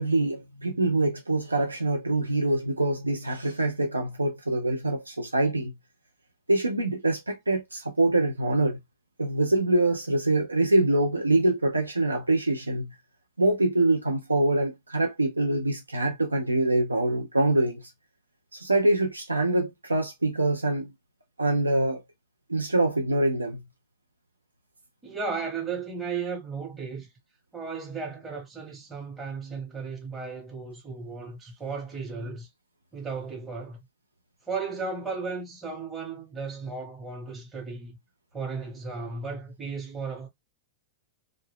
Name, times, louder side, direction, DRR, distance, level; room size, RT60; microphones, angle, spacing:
voice 1, 0.0-5.7 6.5-8.8 9.2-12.9 13.4-17.8 18.5-20.9 21.4-22.0 22.5-23.6, right 2 dB, 85° right, 0.4 m, -24 dB
voice 2, 25.0-27.1 27.5-32.5 32.9-33.8 34.4-38.0 38.3-40.3, right 4 dB, 15° right, 0.8 m, -35 dB
2.4 x 2.1 x 3.4 m
figure-of-eight pair, 100°, 0 cm